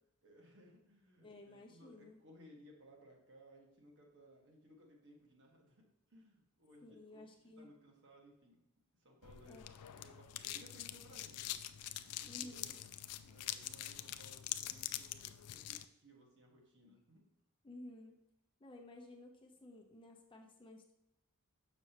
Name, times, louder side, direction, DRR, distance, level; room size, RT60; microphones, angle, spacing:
voice 1, 0.2-7.3 7.6-8.6 9.0-9.6 9.9-11.5 12.2-12.8 13.2-17.3, equal, 55° right, -1 dB, 1.5 m, -62 dB
voice 2, 1.2-2.2 6.8-7.7 9.4-9.7 12.3-12.7 16.8-16.9 17.6-18.2 18.6-20.9, left 2 dB, 25° left, 1 dB, 0.7 m, -54 dB
sound 1, 9.2-15.8, left 13 dB, 90° left, 0.4 m, -45 dB
6.9 x 5.9 x 2.9 m, 0.84 s
head